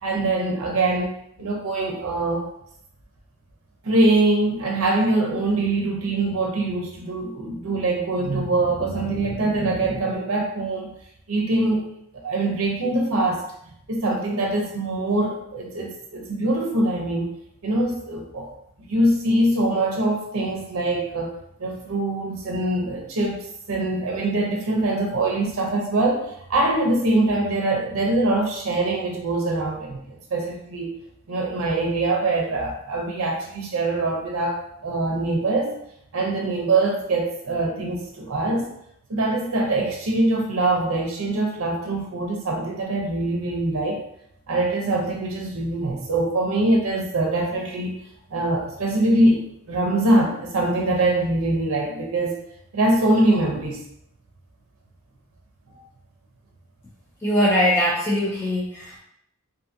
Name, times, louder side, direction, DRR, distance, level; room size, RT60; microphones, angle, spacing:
voice 1, 0.0-2.5 3.8-10.9 11.3-11.9 12.2-13.4 13.9-17.3 17.6-18.5 18.9-21.3 21.6-23.4 23.7-30.9 31.3-35.8 36.1-38.7 39.1-44.0 44.5-48.0 48.3-49.4 49.7-52.4 52.7-53.8, right 2 dB, 75° right, 0 dB, 0.5 m, -23 dB
voice 2, 57.2-59.0, equal, 10° left, -5 dB, 0.3 m, -21 dB
2.6 x 2.5 x 2.6 m, 0.74 s
head